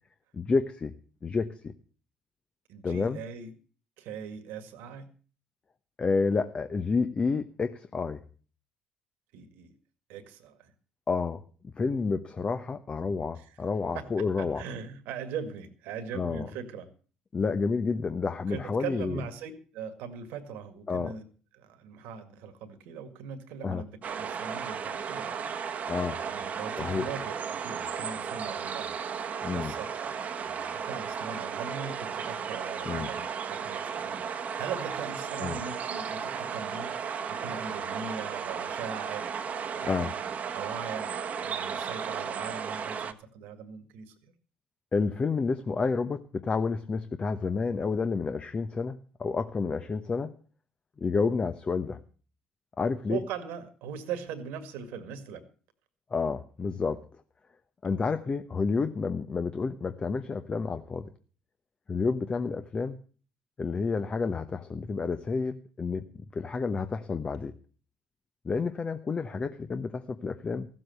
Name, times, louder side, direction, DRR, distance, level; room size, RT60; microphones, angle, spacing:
voice 1, 0.3-0.9 1.2-1.7 2.8-3.2 6.0-8.2 11.1-11.4 11.8-14.6 16.1-16.5 17.3-19.2 20.9-21.1 23.6-23.8 25.9-26.2 26.8-27.1 29.4-29.7 32.8-33.1 35.4-35.6 39.8-40.1 44.9-50.3 51.0-52.0 52.8-53.2 56.1-57.0 57.8-61.1 61.9-63.0 63.6-67.5 68.4-70.7, left 4 dB, 35° left, 9 dB, 1.0 m, -30 dB
voice 2, 2.7-3.5 4.0-5.1 9.3-9.7 10.1-10.7 13.4-13.6 13.9-16.9 18.5-21.2 21.5-25.3 26.1-29.0 29.5-34.2 34.6-37.0 37.3-40.2 40.5-41.1 41.4-44.3 53.1-55.4, right 6 dB, 70° right, 9 dB, 2.0 m, -40 dB
sound 1, 24.0-43.1, right 7 dB, 50° right, 1.2 m, -35 dB
15.0 x 7.7 x 7.7 m, 0.40 s
hypercardioid pair, 60°, 3 cm